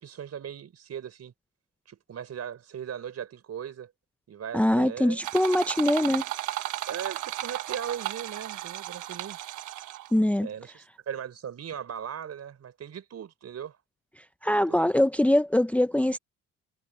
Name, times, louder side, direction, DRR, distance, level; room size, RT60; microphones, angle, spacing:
voice 1, 0.0-1.3 1.9-3.9 4.3-5.2 6.1-6.2 6.9-9.4 10.4-13.8 14.7-14.8, right 8 dB, 55° right, 5.0 m, -38 dB
voice 2, 4.5-6.2 10.1-10.5 14.4-16.2, left 1 dB, 5° left, 0.7 m, -23 dB
sound 1, 5.2-10.2, right 14 dB, 85° right, 1.3 m, -34 dB
cardioid pair, 90°, 30 cm